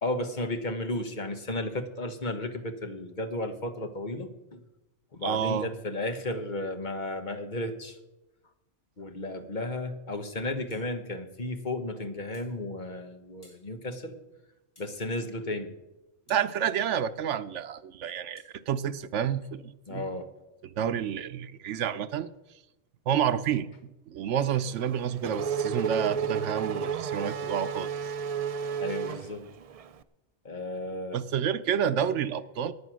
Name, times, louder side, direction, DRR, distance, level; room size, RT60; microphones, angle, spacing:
voice 1, 0.0-4.6 5.1-8.0 9.0-14.1 14.8-15.7 19.9-20.3 28.8-29.4 30.4-31.2, left 1 dB, 40° left, 7 dB, 1.4 m, -34 dB
voice 2, 5.2-5.7 16.3-20.1 20.6-22.3 23.1-23.7 24.1-27.9 31.1-32.7, right 9 dB, 90° right, 11 dB, 1.0 m, -29 dB
sound 1, 10.7-10.9 12.3-12.6 13.4-13.7 14.7-15.0 16.3-16.5 18.4-18.5, equal, 25° left, 3.7 m, -58 dB
Race car auto racing / Accelerating revving vroom, 24.7-29.9, right 6 dB, 50° right, 0.4 m, -32 dB
15.0 x 9.6 x 6.3 m, 1.0 s
omnidirectional pair, 1.2 m